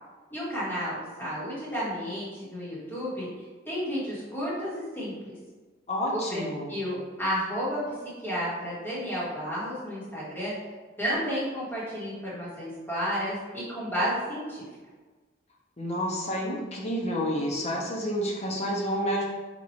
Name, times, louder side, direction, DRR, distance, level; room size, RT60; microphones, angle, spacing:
voice 1, 0.3-3.3 3.6-5.4 6.1-6.4 6.7-7.8 8.2-10.5 11.0-14.6, equal, 10° left, -9 dB, 1.4 m, -32 dB
voice 2, 5.9-6.8 15.8-19.2, equal, 35° left, -2 dB, 0.7 m, -29 dB
2.9 x 2.5 x 4.2 m, 1.3 s
head